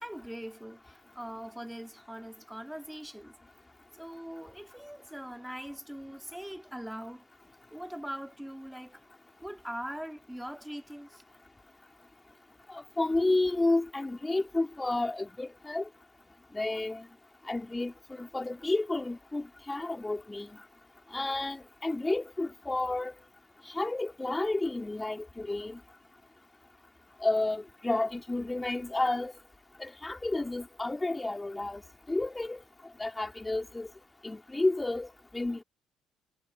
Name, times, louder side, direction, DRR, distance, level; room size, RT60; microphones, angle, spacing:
voice 1, 0.0-3.4 3.9-7.2 7.7-9.0 9.4-11.2, equal, 5° right, 2.6 m, -42 dB
voice 2, 12.7-15.9 16.5-17.1 17.5-20.5 21.1-23.1 23.7-25.8 27.2-29.3 29.8-31.8 32.1-32.6 33.0-33.9 34.2-35.1 35.3-35.6, left 2 dB, 15° left, 4.4 m, -31 dB
figure-of-eight pair, 50°, 0 cm